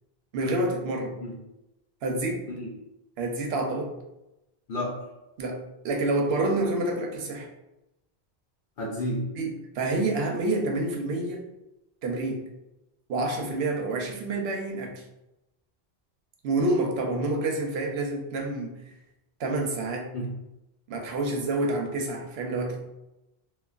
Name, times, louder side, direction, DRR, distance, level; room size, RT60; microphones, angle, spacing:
voice 1, 0.3-1.1 2.0-2.5 3.2-3.9 5.4-7.5 9.4-11.5 12.0-12.4 13.1-15.0 16.4-18.7 19.4-20.1 20.9-22.8, right 2 dB, 85° right, 2 dB, 0.8 m, -28 dB
voice 2, 8.8-9.3 20.1-20.3, left 1 dB, 60° left, -4 dB, 0.7 m, -31 dB
3.1 x 2.1 x 2.4 m, 0.92 s
omnidirectional pair, 1.0 m